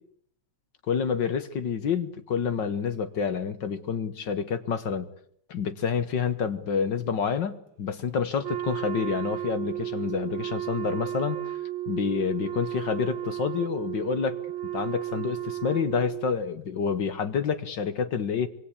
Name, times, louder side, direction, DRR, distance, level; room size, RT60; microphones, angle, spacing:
voice 1, 0.9-5.1 5.5-11.4 11.9-14.4 14.7-18.5, left 6 dB, 50° left, 11 dB, 1.4 m, -28 dB
Wind instrument woodwind instrument, 8.4-16.4, right 12 dB, 65° right, 2.5 m, -33 dB
26.5 x 22.5 x 8.4 m, 0.66 s
omnidirectional pair, 3.5 m